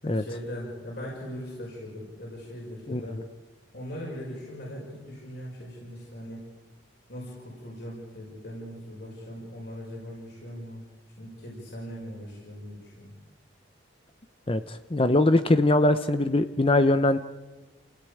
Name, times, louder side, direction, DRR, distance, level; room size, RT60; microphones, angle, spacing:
voice 1, 0.0-3.2 3.7-6.5 7.1-10.8 11.2-13.1, equal, 60° left, -3 dB, 5.8 m, -40 dB
voice 2, 14.5-17.2, left 2 dB, 30° left, 10 dB, 0.7 m, -22 dB
28.5 x 16.5 x 8.5 m, 1.2 s
head